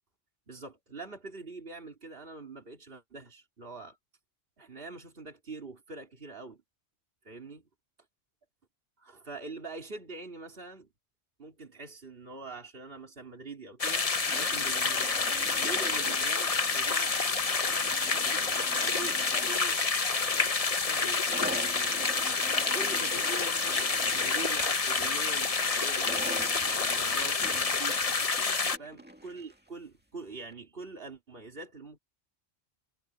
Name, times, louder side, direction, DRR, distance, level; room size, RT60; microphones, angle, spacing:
voice 1, 0.5-4.0 4.6-6.6 7.3-7.7 9.0-10.9 11.4-14.1 14.3-15.1 15.6-17.1 18.0-18.4 18.7-19.8 20.1-21.2 21.5-22.3 22.7-26.1 26.6-28.0 28.8-32.0, right 3 dB, 55° right, 3.4 m, -44 dB
sound 1, 13.8-28.8, left 4 dB, 35° left, 1.0 m, -28 dB
sound 2, 14.2-29.7 30.5-30.6, right 1 dB, 10° right, 2.1 m, -45 dB
omnidirectional pair, 1.2 m